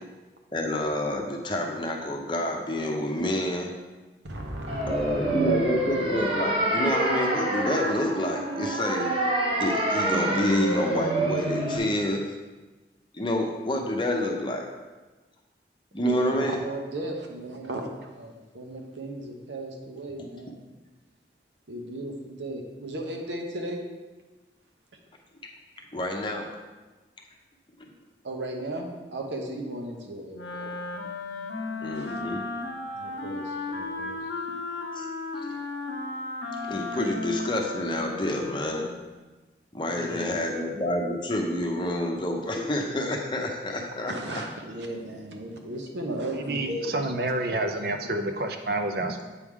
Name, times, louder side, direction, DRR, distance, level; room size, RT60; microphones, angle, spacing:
voice 1, 0.5-3.7 4.9-9.1 9.6-12.2 13.1-14.7 15.9-16.6 25.9-26.5 31.8-32.5 34.9-35.1 35.4-35.6 36.7-38.9 39.7-44.1, left 1 dB, 25° left, 2 dB, 0.7 m, -28 dB
voice 2, 4.2-6.6 16.0-20.5 21.7-23.8 28.2-31.0 31.9-32.2 32.9-34.2 39.9-40.6 44.1-47.7 48.0-48.1, right 1 dB, 85° right, 2 dB, 1.0 m, -36 dB
sound 1, 4.7-11.8, right 2 dB, 35° right, 1.0 m, -27 dB
Wind instrument woodwind instrument, 30.3-39.0, left 3 dB, 80° left, 0.8 m, -35 dB
voice 3, 46.5-49.2, right 2 dB, 55° right, 5 dB, 0.6 m, -28 dB
8.2 x 4.7 x 3.6 m, 1.2 s
head